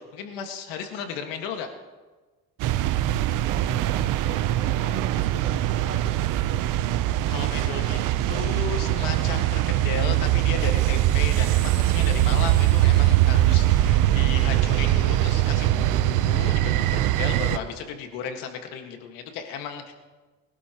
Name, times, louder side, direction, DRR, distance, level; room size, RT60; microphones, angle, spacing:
voice 1, 0.0-1.7 7.3-8.0 8.3-19.9, left 7 dB, 90° left, 5 dB, 1.9 m, -34 dB
sound 1, 2.6-17.6, right 14 dB, 70° right, 0.8 m, -22 dB
voice 2, 3.4-6.7, right 4 dB, 35° right, 0 dB, 2.8 m, -39 dB
23.5 x 12.0 x 3.1 m, 1.3 s
supercardioid pair, 85°, 33 cm